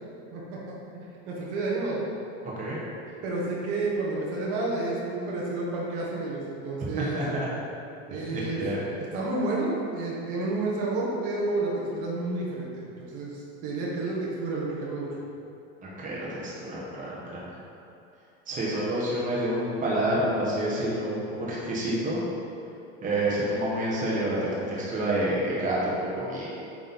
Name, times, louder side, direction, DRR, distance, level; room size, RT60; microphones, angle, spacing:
voice 1, 0.3-2.0 3.2-7.2 8.1-8.6 9.1-15.1, right 2 dB, 60° right, -4 dB, 1.4 m, -30 dB
voice 2, 7.0-7.5 8.2-8.8 15.8-17.5 18.5-22.2 23.0-26.5, right 1 dB, 25° right, -6 dB, 1.2 m, -28 dB
8.2 x 3.2 x 4.1 m, 2.7 s
supercardioid pair, 135°, 33 cm